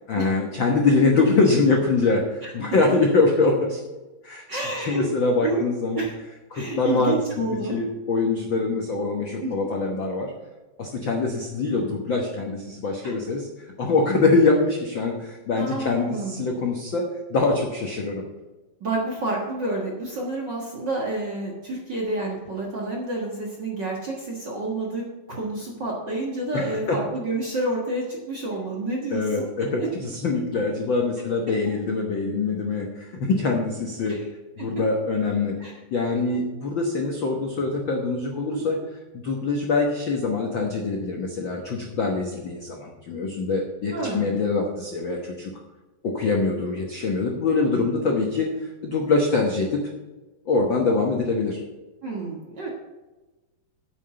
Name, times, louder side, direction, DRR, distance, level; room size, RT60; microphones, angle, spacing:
voice 1, 0.1-3.8 4.2-6.1 6.5-10.3 10.8-18.3 26.5-27.0 29.1-34.2 34.6-35.6 35.9-38.8 39.1-45.5 46.0-49.8 50.5-51.6, left 3 dB, 85° left, 1 dB, 1.0 m, -24 dB
voice 2, 4.5-5.1 5.4-5.6 5.9-6.2 6.5-7.8 9.4-9.7 13.0-13.1 15.5-16.4 18.8-29.5 29.8-29.9 34.0-34.3 34.6-34.7 35.6-35.8 38.5-38.6 43.9-44.3 52.0-52.7, right 2 dB, 50° right, -2 dB, 1.4 m, -29 dB
9.0 x 7.2 x 7.0 m, 1.1 s
omnidirectional pair, 4.0 m